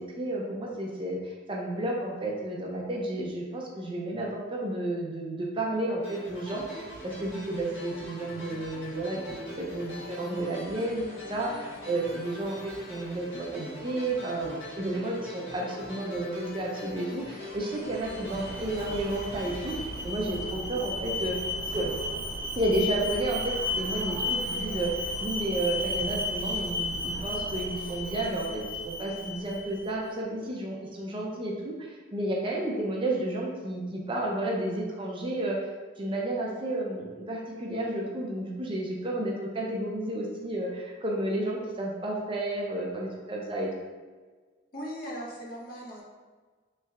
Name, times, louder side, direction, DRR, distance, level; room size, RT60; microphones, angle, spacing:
voice 1, 0.0-9.2 9.6-21.3 21.6-21.9 22.5-35.6 36.0-43.7, right 1 dB, 25° right, -2 dB, 0.5 m, -32 dB
sound 1, 6.0-20.9, left 1 dB, 75° left, 1.4 m, -43 dB
Alarm, 17.8-29.9, left 1 dB, 75° right, 0.7 m, -34 dB
voice 2, 44.7-46.0, equal, 45° left, -3 dB, 0.8 m, -38 dB
3.2 x 3.2 x 3.5 m, 1.4 s
head